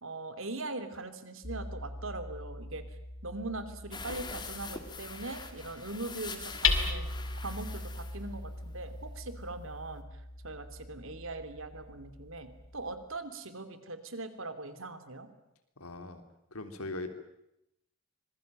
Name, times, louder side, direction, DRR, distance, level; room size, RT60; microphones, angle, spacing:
voice 1, 0.0-2.8 3.2-7.1 7.3-10.0 10.4-15.3, right 2 dB, 65° right, 10 dB, 3.0 m, -41 dB
Hammer, 1.4-13.2, left 4 dB, 60° left, 3.2 m, -38 dB
sound 1, 3.9-9.2 9.5-9.6 9.9-10.0, left 4 dB, 20° left, 2.6 m, -44 dB
voice 2, 15.8-16.2 16.5-17.1, left 2 dB, 85° left, 7 dB, 3.5 m, -40 dB
25.5 x 21.5 x 9.1 m, 0.82 s
head